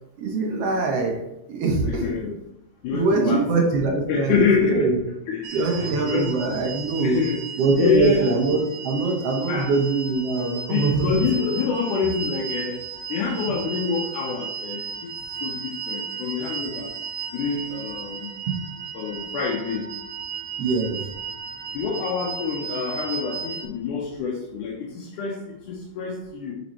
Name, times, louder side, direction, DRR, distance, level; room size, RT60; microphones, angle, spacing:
voice 1, 0.2-1.2 1.5-2.1 2.9-5.0 5.5-7.2 7.6-11.2 18.5-18.6 20.6-21.0, right 3 dB, 65° right, 1 dB, 1.6 m, -23 dB
voice 2, 1.9-2.3 2.8-3.4 4.1-4.9 5.3-6.5 7.0-7.4 7.8-8.3 9.5-9.7 10.7-12.8 13.1-14.9 15.4-16.9 17.3-18.3 18.9-19.9 21.7-25.4 25.7-26.5, left 5 dB, 85° left, -2 dB, 2.4 m, -26 dB
sound 1, 5.4-23.7, right 6 dB, 85° right, 2.2 m, -35 dB
7.6 x 5.2 x 3.0 m, 0.90 s
omnidirectional pair, 3.5 m